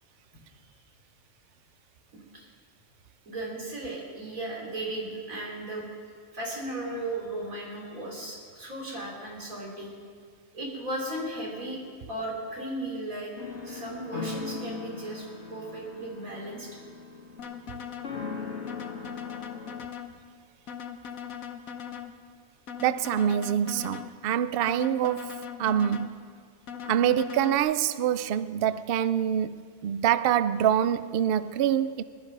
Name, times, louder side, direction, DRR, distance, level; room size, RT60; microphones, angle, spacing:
voice 1, 2.1-2.5 3.3-5.9 6.3-9.9 10.5-11.8 12.1-13.3 13.6-16.7, right 1 dB, 80° right, 3.9 m, -36 dB
sound 1, 13.4-19.9, left 5 dB, 55° left, 1.7 m, -39 dB
sound 2, 17.4-18.1 18.7-20.1 20.7-22.1 22.7-24.1 24.7-26.1 26.7-27.6, left 8 dB, 80° left, 1.4 m, -39 dB
voice 2, 22.8-25.3 25.6-26.2 26.9-32.0, right 10 dB, 60° right, 0.6 m, -25 dB
20.0 x 12.0 x 5.4 m
omnidirectional pair, 1.4 m